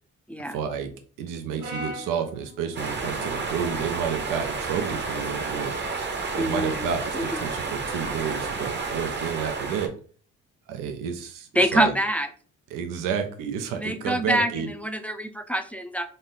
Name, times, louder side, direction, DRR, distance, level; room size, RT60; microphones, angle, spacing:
voice 1, 0.5-0.9 1.2-5.7 6.3-9.9 10.7-11.9 12.7-14.7, right 7 dB, 90° right, 6 dB, 0.6 m, -30 dB
Brass instrument, 1.6-5.8, equal, 60° right, 1.1 m, -43 dB
sound 1, 2.8-9.9, right 4 dB, 35° right, 0.8 m, -31 dB
voice 2, 6.4-6.9 7.1-7.4 11.6-12.3 13.8-14.5 14.8-16.1, equal, 5° left, 7 dB, 0.4 m, -25 dB
3.9 x 2.0 x 3.7 m, 0.43 s
cardioid pair, 75°, 31 cm